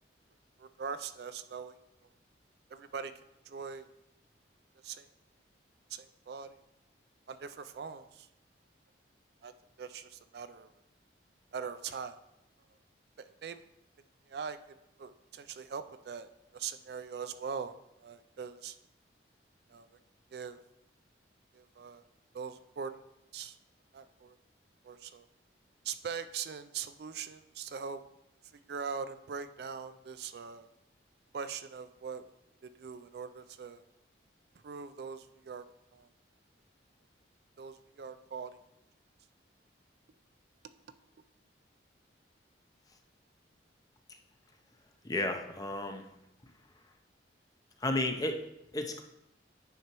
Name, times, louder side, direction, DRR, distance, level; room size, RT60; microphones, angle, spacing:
voice 1, 0.6-1.8 2.7-3.1 3.5-3.9 4.8-5.1 5.9-6.6 7.3-8.3 9.4-9.5 9.8-10.7 11.5-12.2 13.2-13.7 14.3-14.6 15.0-18.8 19.7-20.0 20.3-20.6 21.5-22.0 22.3-23.0 23.3-23.6 23.9-24.4 24.8-25.3 25.8-28.0 28.5-30.7 31.3-32.3 32.6-33.8 34.6-35.6 35.9-36.1 37.6-38.5, right 6 dB, 55° right, 12 dB, 0.3 m, -41 dB
voice 2, 45.0-46.1 47.8-48.4 48.7-49.0, left 2 dB, 20° left, 5 dB, 0.5 m, -32 dB
9.1 x 5.6 x 2.9 m, 0.85 s
head